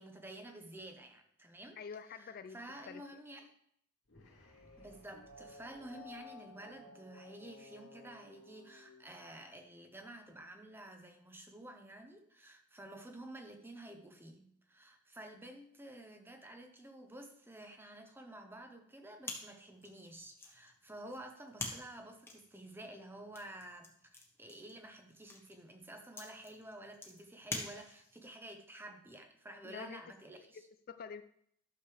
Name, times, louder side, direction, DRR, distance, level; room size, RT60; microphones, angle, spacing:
voice 1, 0.0-1.8 2.2-3.5 4.8-30.6, right 1 dB, 10° right, 5 dB, 0.9 m, -51 dB
voice 2, 1.8-2.6 2.9-3.2 5.1-5.3 29.6-30.0 30.4-31.2, left 6 dB, 45° left, 11 dB, 0.3 m, -48 dB
sound 1, 4.1-9.6, left 3 dB, 85° left, 2.3 m, -56 dB
sound 2, 19.2-28.3, left 2 dB, 10° left, 1.2 m, -47 dB
11.5 x 6.6 x 3.3 m, 0.69 s
head